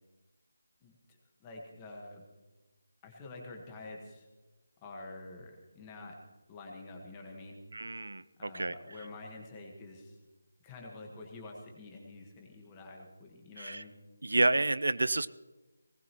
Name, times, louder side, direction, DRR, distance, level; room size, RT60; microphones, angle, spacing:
voice 1, 0.8-2.2 3.0-4.3 4.8-6.2 6.5-7.6 8.4-10.2 10.6-13.9, left 2 dB, 10° left, 0 dB, 1.4 m, -48 dB
voice 2, 7.7-8.7 13.6-13.8 14.2-15.3, right 2 dB, 85° right, 16 dB, 0.6 m, -29 dB
19.0 x 19.0 x 3.0 m, 1.1 s
figure-of-eight pair, 180°, 0 cm